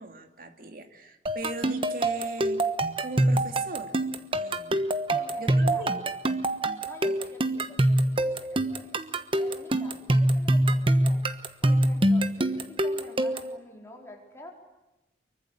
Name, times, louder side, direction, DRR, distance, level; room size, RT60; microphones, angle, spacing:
voice 1, 0.0-2.6 3.0-4.0 4.3-4.9 5.4-6.1, right 2 dB, 50° right, 7 dB, 2.4 m, -39 dB
sound 1, 1.3-13.6, right 1 dB, 30° right, 1.2 m, -25 dB
voice 2, 5.1-5.9 6.8-9.0 9.4-11.3 11.6-14.5, left 1 dB, 15° left, 1 dB, 4.5 m, -47 dB
24.5 x 23.5 x 8.4 m, 0.98 s
head